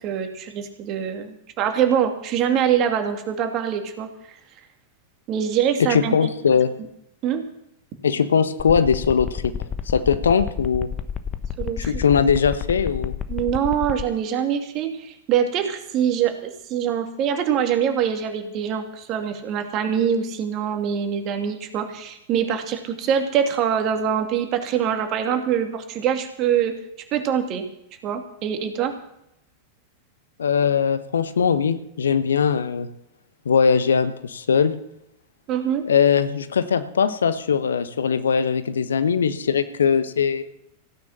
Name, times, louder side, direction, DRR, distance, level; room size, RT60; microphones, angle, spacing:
voice 1, 0.0-4.1 5.3-6.2 7.2-7.4 11.6-11.9 13.3-26.8 27.1-27.6 28.0-28.9 35.5-35.8, right 8 dB, 35° right, 5 dB, 2.6 m, -24 dB
voice 2, 5.8-6.7 8.0-9.5 9.8-10.9 11.8-13.1 30.4-32.9 33.4-34.7 35.9-40.4, left 6 dB, 70° left, 12 dB, 1.1 m, -20 dB
sound 1, 8.6-14.0, left 8 dB, 30° left, 1.2 m, -29 dB
16.0 x 9.9 x 7.3 m, 0.77 s
figure-of-eight pair, 90°, 0 cm